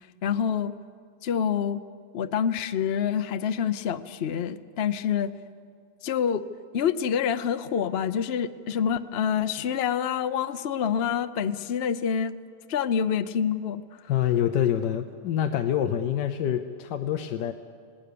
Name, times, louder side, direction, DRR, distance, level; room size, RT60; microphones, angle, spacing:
voice 1, 0.2-0.7 1.2-1.8 2.1-5.3 6.0-6.4 6.7-12.3 12.7-13.8, left 8 dB, 55° left, 10 dB, 0.7 m, -27 dB
voice 2, 14.1-17.5, left 10 dB, 85° left, 8 dB, 1.4 m, -26 dB
27.5 x 18.5 x 6.8 m, 2.1 s
omnidirectional pair, 1.8 m